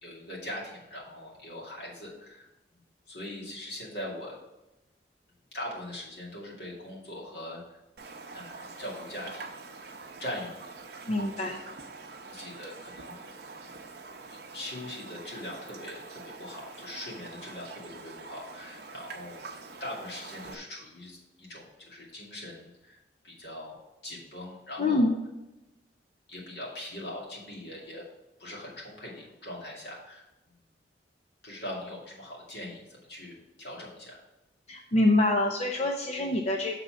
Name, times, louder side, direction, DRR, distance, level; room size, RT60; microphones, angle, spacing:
voice 1, 0.0-2.8 3.1-4.4 5.5-7.8 8.3-9.6 10.2-10.5 12.3-13.2 14.3-19.4 19.8-23.0 23.2-23.8 24.0-25.1 26.3-28.0 28.4-30.6 31.4-34.2, left 1 dB, 70° left, -4 dB, 2.4 m, -41 dB
Raindrop, 8.0-20.5, right 4 dB, 65° right, 0.7 m, -45 dB
voice 2, 11.1-11.6 24.8-25.1 34.7-36.8, left 2 dB, 40° left, 2 dB, 0.5 m, -25 dB
6.8 x 4.1 x 6.2 m, 0.98 s
head